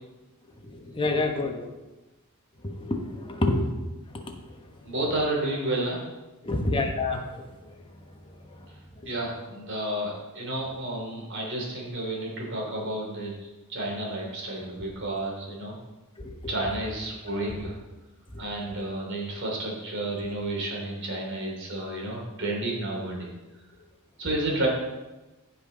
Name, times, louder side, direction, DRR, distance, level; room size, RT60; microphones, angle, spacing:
voice 1, 0.6-1.7 2.6-3.6 4.3-4.4 6.4-7.7 9.0-9.1 16.2-16.3 17.4-17.6 18.3-18.4, left 2 dB, 25° left, 3 dB, 1.2 m, -28 dB
voice 2, 4.8-6.0 9.0-15.7 16.5-17.7 18.4-23.3 24.2-24.7, right 1 dB, 55° right, -2 dB, 3.0 m, -31 dB
15.0 x 5.7 x 3.9 m, 1.1 s
head